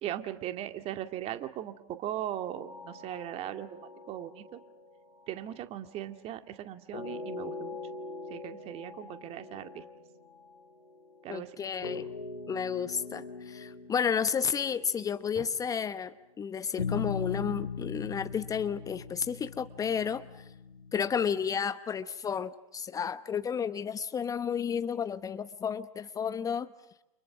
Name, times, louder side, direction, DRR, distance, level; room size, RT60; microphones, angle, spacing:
voice 1, 0.0-4.6 5.3-7.8 8.3-9.8 11.2-11.5 15.4-15.5, right 12 dB, 35° right, 2.2 m, -38 dB
sound 1, 2.5-6.1 6.9-15.9 16.8-21.4, left 4 dB, 80° left, 7.0 m, -41 dB
voice 2, 11.3-12.1 12.5-20.4 20.9-26.7, left 7 dB, 20° left, 0.9 m, -32 dB
30.0 x 28.5 x 6.2 m
figure-of-eight pair, 95°, 18 cm